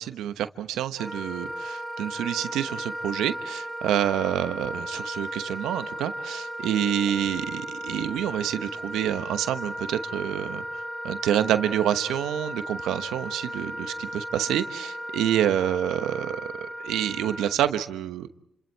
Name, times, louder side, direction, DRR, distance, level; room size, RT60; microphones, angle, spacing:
voice 1, 0.0-10.6 11.0-18.3, right 11 dB, 85° right, 10 dB, 1.0 m, -27 dB
Wind instrument woodwind instrument, 1.0-17.6, equal, ahead, 3.7 m, -35 dB
29.5 x 26.0 x 4.6 m, 0.79 s
cardioid pair, 90°, 0 cm